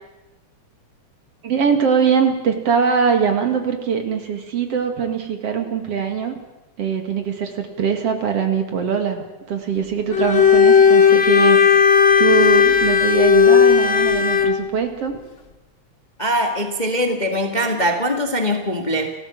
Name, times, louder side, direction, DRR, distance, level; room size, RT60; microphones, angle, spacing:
voice 1, 1.4-6.4 6.8-11.6 12.2-15.2, right 6 dB, 55° right, 6 dB, 3.0 m, -22 dB
Bowed string instrument, 10.1-14.6, left 7 dB, 75° left, 0.5 m, -14 dB
voice 2, 16.2-19.1, equal, 20° left, 4 dB, 1.5 m, -22 dB
30.0 x 14.5 x 7.6 m, 1.1 s
omnidirectional pair, 3.3 m